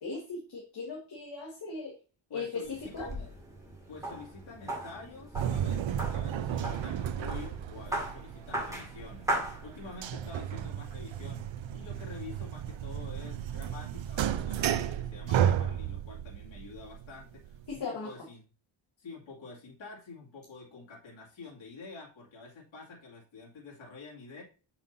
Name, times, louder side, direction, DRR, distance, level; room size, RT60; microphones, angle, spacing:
voice 1, 0.0-1.9 2.3-3.1 17.7-18.1, left 4 dB, 55° left, -2 dB, 1.8 m, -38 dB
voice 2, 2.3-3.4 3.9-9.3 9.6-18.4 19.0-24.4, left 4 dB, 70° left, -4 dB, 2.5 m, -48 dB
sound 1, 2.6-10.2, right 1 dB, 5° right, 2.2 m, -38 dB
sound 2, 5.3-17.8, right 10 dB, 70° right, 0.6 m, -33 dB
6.8 x 5.7 x 2.7 m, 0.34 s
wide cardioid pair, 160°, 48 cm